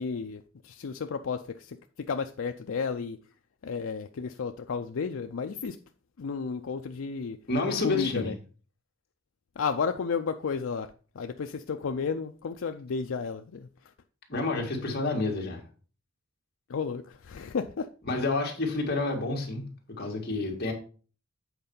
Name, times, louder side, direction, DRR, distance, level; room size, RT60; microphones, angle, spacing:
voice 1, 0.0-3.2 3.6-5.8 6.2-7.4 7.8-8.3 9.6-10.9 11.2-13.7 16.7-17.9, left 5 dB, 65° left, 0.4 m, -32 dB
voice 2, 7.5-8.3 14.3-15.6 18.1-20.7, left 3 dB, 50° left, 2.0 m, -29 dB
8.0 x 4.3 x 5.4 m
head